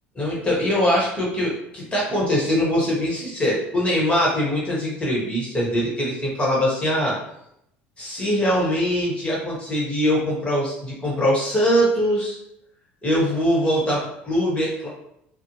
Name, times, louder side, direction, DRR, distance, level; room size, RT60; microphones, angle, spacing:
voice 1, 0.2-7.2 8.0-12.4 13.0-14.9, equal, 20° left, -5 dB, 1.1 m, -22 dB
2.6 x 2.1 x 2.9 m, 0.78 s
figure-of-eight pair, 65°, 6 cm